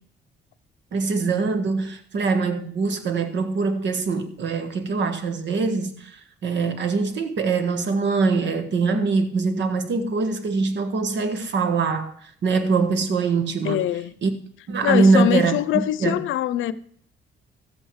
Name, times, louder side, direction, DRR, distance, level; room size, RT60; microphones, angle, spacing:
voice 1, 0.9-13.9 14.2-14.3 14.7-16.2, right 4 dB, 65° right, 1.6 m, -23 dB
voice 2, 13.6-14.1 14.8-16.7, left 13 dB, 80° left, 0.6 m, -23 dB
13.0 x 8.1 x 4.7 m
cardioid pair, 90°, 20 cm